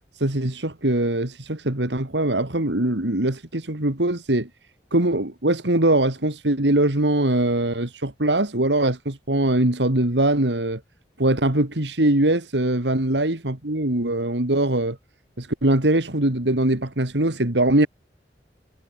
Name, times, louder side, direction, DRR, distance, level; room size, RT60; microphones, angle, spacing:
voice 1, 0.2-4.5 4.9-10.8 11.2-15.0 15.4-17.9, right 1 dB, 80° right, 2.7 m, -22 dB
head